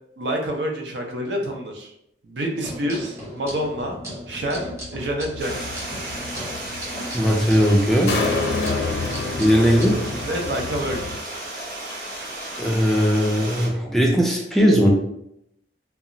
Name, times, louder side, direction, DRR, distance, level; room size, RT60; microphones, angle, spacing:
voice 1, 0.2-1.9 2.2-4.0 4.3-5.7 10.2-11.1, equal, 80° right, 1 dB, 0.6 m, -27 dB
sound 1, 2.6-10.2, equal, 15° right, 0.7 m, -38 dB
sound 2, 3.5-11.2, left 3 dB, 80° left, 0.5 m, -30 dB
Stream, 5.4-13.7, right 1 dB, 50° right, 0.8 m, -34 dB
voice 2, 7.1-8.1 9.4-10.0 12.6-14.9, equal, ahead, -2 dB, 0.3 m, -18 dB
2.3 x 2.0 x 3.7 m, 0.78 s
head